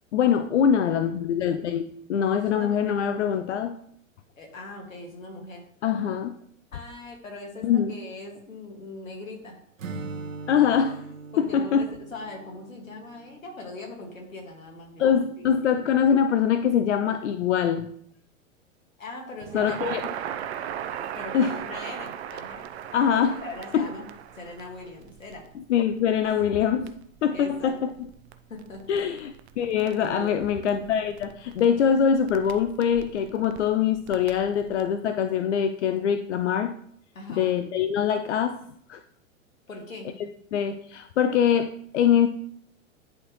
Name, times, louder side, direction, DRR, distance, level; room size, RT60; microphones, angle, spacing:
voice 1, 0.1-3.8 5.8-6.3 7.6-7.9 10.5-11.0 11.4-11.9 15.0-17.9 19.5-20.0 21.3-21.6 22.9-23.4 23.7-23.9 25.6-26.9 27.2-27.9 28.9-36.7 37.3-38.6 38.9-39.0 40.5-42.3, left 8 dB, 60° left, 10 dB, 0.5 m, -23 dB
voice 2, 2.4-3.0 4.4-6.1 6.7-9.6 11.3-15.5 19.0-19.9 21.1-22.7 23.4-24.1 24.3-25.4 26.2-26.4 27.3-27.8 28.5-28.9 30.0-30.5 37.1-37.6 39.7-40.1, left 2 dB, 75° left, 2 dB, 2.1 m, -40 dB
Acoustic guitar / Strum, 9.8-13.7, right 3 dB, 70° right, 1.2 m, -40 dB
Crackle, 19.4-34.9, right 9 dB, 55° right, 0.7 m, -39 dB
10.5 x 4.3 x 3.1 m, 0.67 s
figure-of-eight pair, 100°, 40 cm